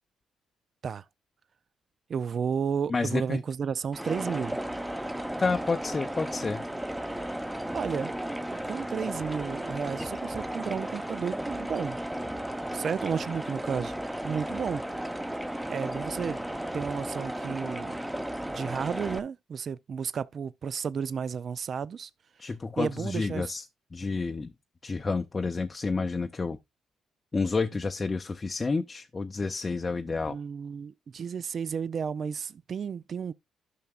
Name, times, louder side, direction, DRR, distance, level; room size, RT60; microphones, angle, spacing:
voice 1, 2.1-4.6 7.7-8.1 8.6-12.0 12.7-13.9 14.2-14.8 15.7-16.4 16.7-18.0 18.4-22.1 22.4-22.5 22.8-23.6 30.3-33.3, right 6 dB, 50° right, 0.4 m, -32 dB
voice 2, 2.9-3.4 5.4-6.6 22.4-23.6 23.9-24.5 24.8-26.6 27.3-30.4, left 4 dB, 30° left, 0.6 m, -30 dB
sound 1, 3.9-19.2, right 1 dB, 5° right, 0.8 m, -34 dB
12.5 x 5.8 x 2.4 m
cardioid pair, 90°, 0 cm